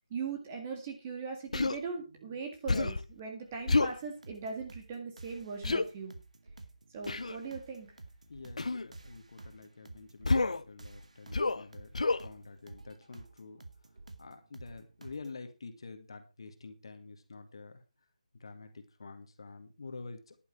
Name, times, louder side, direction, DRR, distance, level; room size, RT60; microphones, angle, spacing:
voice 1, 0.1-6.2 6.9-7.9, right 5 dB, 15° right, 3 dB, 1.8 m, -40 dB
Human voice, 1.5-1.8 2.7-3.1 3.7-4.0 5.6-5.9 7.1-7.4 8.6-8.9 10.2-10.6 11.3-11.6 11.9-12.2, left 3 dB, 65° left, 1.0 m, -28 dB
sound 1, 3.7-15.4, right 2 dB, 65° right, 2.3 m, -52 dB
voice 2, 8.3-12.0 12.2-13.6 14.2-17.8 18.3-20.4, left 3 dB, 40° left, 7 dB, 2.1 m, -48 dB
11.0 x 9.9 x 4.8 m, 0.29 s
figure-of-eight pair, 175°, 4 cm